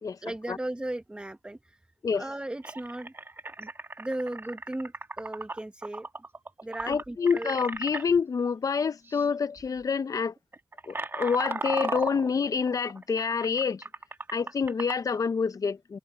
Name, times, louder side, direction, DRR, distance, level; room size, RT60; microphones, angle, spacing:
voice 1, 0.2-1.8 2.1-3.1 3.6-3.7 4.0-6.1 6.6-7.5, right 1 dB, 15° right, 1.2 m, -36 dB
sound 1, 2.0-2.1 2.6-8.0 9.0-9.3 9.6-9.8 10.4-15.1, right 3 dB, 30° right, 1.6 m, -37 dB
voice 2, 6.9-10.3 10.9-13.8 14.3-16.0, left 5 dB, 55° left, 0.9 m, -27 dB
cardioid pair, 60°, 7 cm